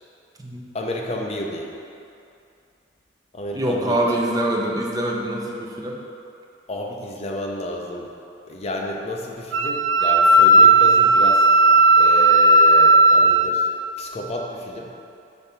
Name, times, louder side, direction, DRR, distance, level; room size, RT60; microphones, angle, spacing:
voice 1, 0.7-1.7 3.3-4.0 6.7-8.1 8.5-11.5 12.0-13.7 14.0-14.9, left 1 dB, 35° left, 0 dB, 0.6 m, -31 dB
voice 2, 3.5-6.0, right 1 dB, 20° right, -2 dB, 0.6 m, -24 dB
Wind instrument woodwind instrument, 9.5-13.5, right 2 dB, 80° right, 0.3 m, -14 dB
5.3 x 3.5 x 5.7 m, 2.6 s
head